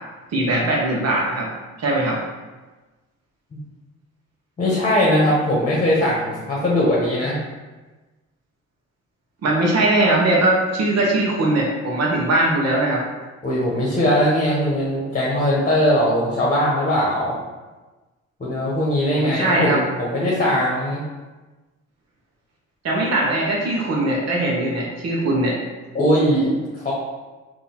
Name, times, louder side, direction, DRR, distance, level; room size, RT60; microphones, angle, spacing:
voice 1, 0.3-1.5 1.8-2.2 9.4-13.0 19.1-19.8 22.8-25.5, right 2 dB, 60° right, -3 dB, 1.1 m, -20 dB
voice 2, 4.6-7.4 13.4-17.4 18.4-21.0 25.9-26.9, equal, 25° left, -5 dB, 1.2 m, -20 dB
3.7 x 2.8 x 4.2 m, 1.2 s
cardioid pair, 90°, 30 cm